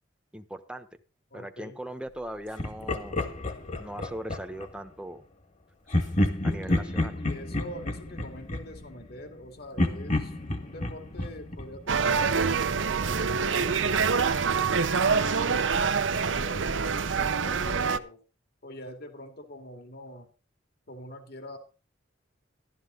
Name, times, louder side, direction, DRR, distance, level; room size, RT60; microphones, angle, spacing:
voice 1, 0.3-0.9 1.3-3.2 3.8-5.2 6.4-7.2, right 1 dB, 5° right, 7 dB, 1.0 m, -39 dB
voice 2, 1.3-1.8 6.7-14.7 15.0-18.2 18.6-20.3 20.9-21.6, left 1 dB, 55° left, 6 dB, 2.3 m, -44 dB
Laughter, 2.6-4.7 5.9-9.4 9.8-12.5, left 1 dB, 40° left, 1.9 m, -30 dB
sound 1, 11.9-18.0, right 5 dB, 75° right, 0.8 m, -25 dB
13.5 x 12.0 x 3.9 m, 0.33 s
head